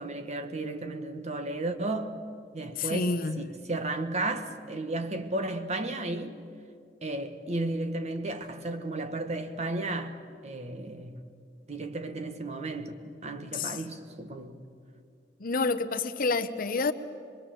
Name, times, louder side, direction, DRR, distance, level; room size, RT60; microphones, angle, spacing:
voice 1, 0.0-2.2 2.5-6.4 7.0-10.2 10.4-11.2 11.7-14.6, right 2 dB, 40° right, 1.3 m, -34 dB
voice 2, 2.8-3.4 13.5-13.8 15.4-16.9, left 3 dB, 50° left, 0.9 m, -28 dB
24.5 x 22.0 x 7.7 m
head